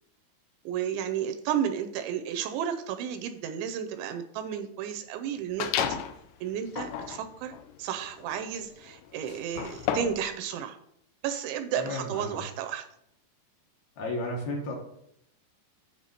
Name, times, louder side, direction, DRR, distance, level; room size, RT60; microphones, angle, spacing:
voice 1, 0.7-6.0 6.4-7.5 7.8-10.8 11.2-12.9, right 9 dB, 80° right, 7 dB, 2.8 m, -32 dB
sound 1, 5.6-6.2 6.7-10.3, left 9 dB, 85° left, 2.4 m, -33 dB
voice 2, 11.8-12.4 14.0-14.7, left 1 dB, 70° left, -1 dB, 2.6 m, -33 dB
9.1 x 3.5 x 6.5 m, 0.74 s
omnidirectional pair, 5.5 m